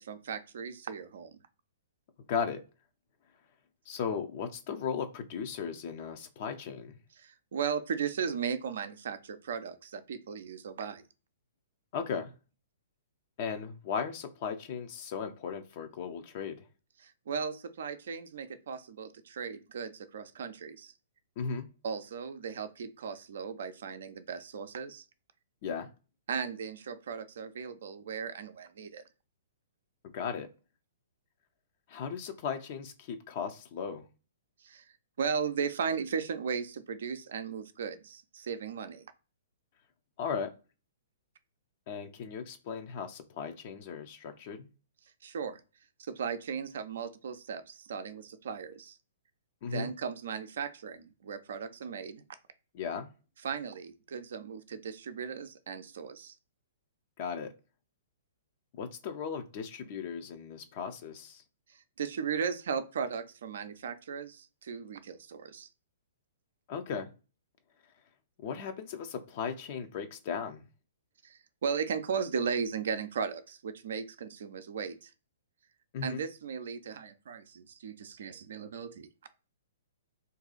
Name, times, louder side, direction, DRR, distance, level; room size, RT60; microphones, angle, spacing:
voice 1, 0.0-1.4 7.2-11.0 17.0-20.9 21.8-25.0 26.3-29.0 34.6-34.8 35.2-39.1 45.2-45.6 46.0-49.0 49.6-52.2 53.4-56.3 62.0-65.7 71.2-75.1 76.0-79.1, right 6 dB, 65° right, 0.5 m, -36 dB
voice 2, 2.3-2.6 3.9-7.0 11.9-12.3 13.4-16.6 21.4-21.7 25.6-25.9 30.1-30.5 31.9-34.0 40.2-40.5 41.9-44.7 49.6-49.9 52.7-53.1 57.2-57.5 58.8-61.4 66.7-67.1 68.4-70.6 75.9-76.2, left 6 dB, 45° left, 0.6 m, -36 dB
2.7 x 2.4 x 3.8 m
figure-of-eight pair, 120°, 0 cm